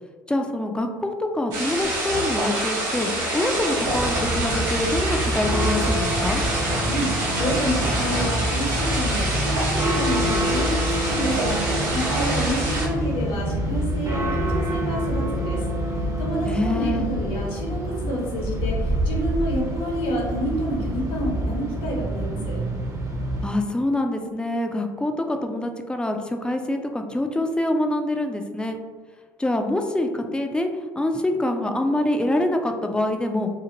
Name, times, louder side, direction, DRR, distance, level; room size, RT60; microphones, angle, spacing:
voice 1, 0.3-6.4 16.5-17.1 23.4-28.8 29.4-30.7 31.0-33.5, left 1 dB, 10° left, 5 dB, 0.4 m, -25 dB
sound 1, 1.5-12.9, right 1 dB, 80° right, 0.9 m, -26 dB
sound 2, 3.8-23.5, right 1 dB, 35° right, 0.7 m, -26 dB
voice 2, 7.4-11.6 11.9-15.6 16.2-22.6, equal, 60° left, -2 dB, 0.9 m, -28 dB
2.7 x 2.4 x 2.8 m, 1.5 s
hypercardioid pair, 65°, 10 cm